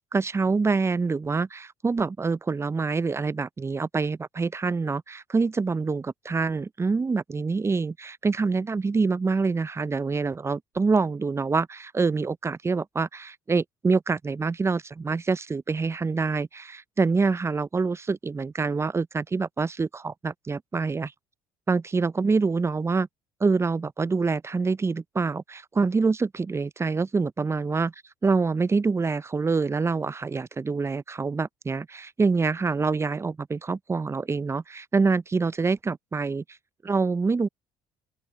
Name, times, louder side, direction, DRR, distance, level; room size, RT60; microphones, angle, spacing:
voice 1, 0.1-21.1 21.7-23.1 23.4-27.9 28.2-36.4 36.8-37.5, right 4 dB, 20° right, 0.5 m, -26 dB
open air
hypercardioid pair, 65°, 13 cm